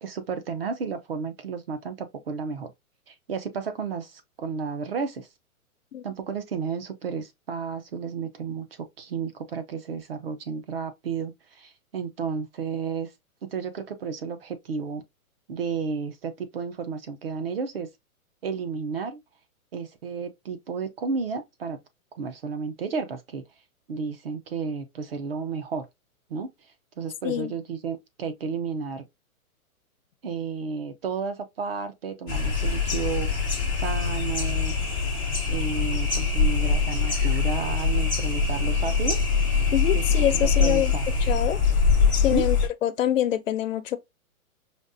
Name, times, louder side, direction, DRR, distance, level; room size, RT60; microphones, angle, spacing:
voice 1, 0.0-2.7 3.1-5.3 6.0-13.1 13.4-15.0 15.5-17.9 18.4-19.2 19.7-21.8 22.2-23.4 23.9-25.9 26.3-26.5 27.0-29.1 30.2-33.3 33.8-34.7 35.5-39.2 39.9-40.0 40.3-41.0 42.3-42.4, right 5 dB, 45° right, 0.6 m, -32 dB
sound 1, 32.3-42.7, left 5 dB, 5° right, 0.4 m, -23 dB
voice 2, 39.7-40.9 41.2-41.6 42.2-42.6 42.8-44.0, left 11 dB, 60° left, 0.6 m, -25 dB
5.1 x 2.4 x 2.5 m
hypercardioid pair, 165°, 43 cm